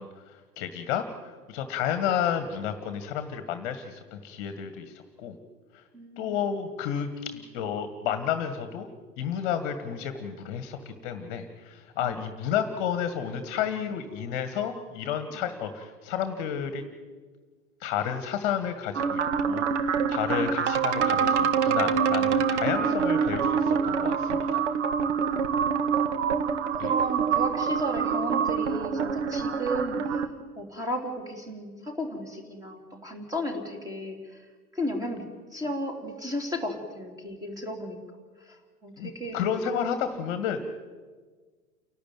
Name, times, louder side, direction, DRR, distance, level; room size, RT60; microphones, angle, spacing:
voice 1, 0.0-5.3 5.7-5.8 6.2-8.9 9.2-16.8 17.8-24.6 26.8-26.9 39.0-40.7, left 8 dB, 35° left, 10 dB, 1.6 m, -31 dB
voice 2, 5.9-6.4 12.0-12.2 15.3-15.4 26.8-30.2 30.6-34.4 34.7-35.2 35.5-39.4 40.0-40.3, equal, 10° right, 3 dB, 3.0 m, -34 dB
sound 1, 18.9-30.3, right 6 dB, 50° right, 1.4 m, -26 dB
29.0 x 12.0 x 9.3 m, 1.5 s
figure-of-eight pair, 105°, 46 cm